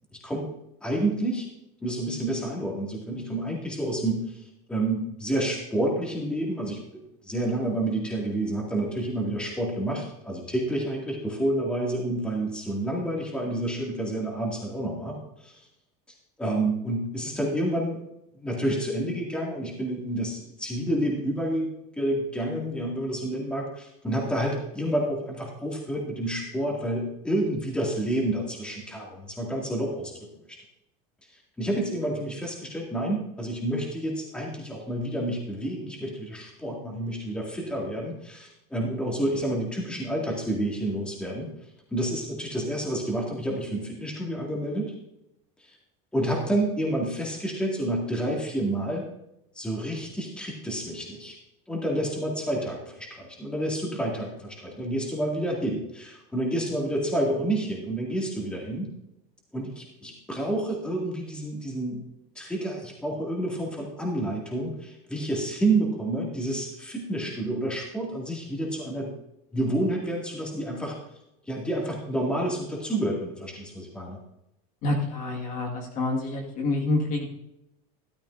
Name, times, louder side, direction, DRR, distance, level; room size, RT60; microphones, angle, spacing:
voice 1, 0.1-0.5 0.8-1.5 1.8-4.4 4.7-6.8 7.2-15.2 15.4-15.6 16.4-18.0 18.3-30.6 31.6-41.5 41.9-44.9 46.1-49.0 49.6-51.4 51.7-58.9 59.5-62.0 62.4-69.1 69.5-71.0 71.5-74.2, right 1 dB, 5° left, -2 dB, 2.4 m, -29 dB
voice 2, 74.8-77.3, left 2 dB, 40° left, 0 dB, 1.9 m, -27 dB
13.0 x 13.0 x 2.7 m, 0.84 s
supercardioid pair, 155°, 19 cm